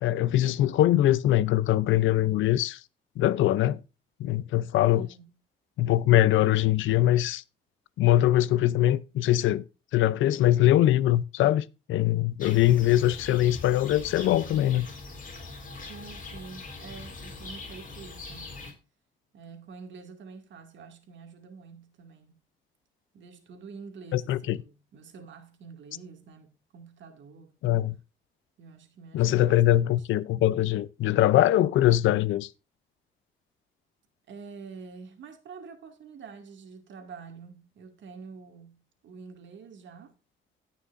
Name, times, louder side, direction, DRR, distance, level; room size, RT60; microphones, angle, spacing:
voice 1, 0.0-2.8 3.2-3.8 4.2-5.1 5.8-7.4 8.0-9.6 9.9-14.9 24.1-24.6 27.6-28.0 29.1-32.5, left 13 dB, 80° left, 0.6 m, -22 dB
voice 2, 4.9-5.3 15.9-18.6 19.3-22.4 23.1-27.6 28.6-30.0 34.3-40.1, right 5 dB, 70° right, 2.3 m, -47 dB
sound 1, 12.4-18.7, left 3 dB, 45° left, 3.5 m, -42 dB
17.0 x 6.0 x 2.6 m
cardioid pair, 90°, 20 cm